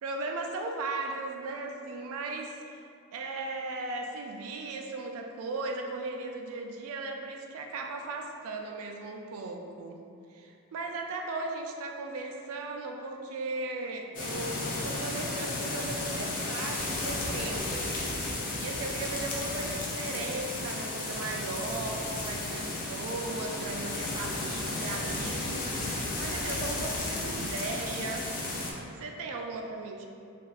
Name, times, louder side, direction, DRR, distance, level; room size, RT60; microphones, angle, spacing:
voice 1, 0.0-2.8 3.1-10.0 10.3-18.0 18.6-28.3 29.0-30.1, right 3 dB, 65° right, 2 dB, 0.3 m, -37 dB
sound 1, 14.1-28.7, left 2 dB, 40° left, 0.4 m, -34 dB
3.2 x 2.5 x 2.3 m, 2.5 s
head